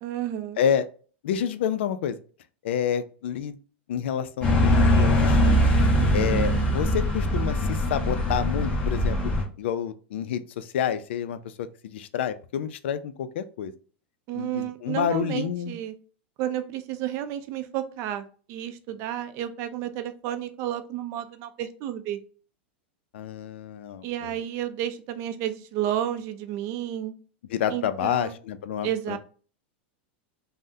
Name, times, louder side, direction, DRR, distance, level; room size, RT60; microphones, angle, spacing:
voice 1, 0.0-0.6 5.9-6.5 14.3-15.9 16.4-22.2 24.0-27.1 27.7-28.4 28.8-29.2, right 11 dB, 45° right, 10 dB, 0.4 m, -31 dB
voice 2, 1.2-2.2 2.6-3.6 3.9-5.6 6.1-9.2 9.6-13.7 14.3-15.7 23.1-24.4 27.5-29.2, left 8 dB, 75° left, 12 dB, 0.4 m, -29 dB
sound 1, 4.4-9.4, equal, 15° left, 0.9 m, -22 dB
3.4 x 2.1 x 2.6 m, 0.39 s
hypercardioid pair, 120°, 6 cm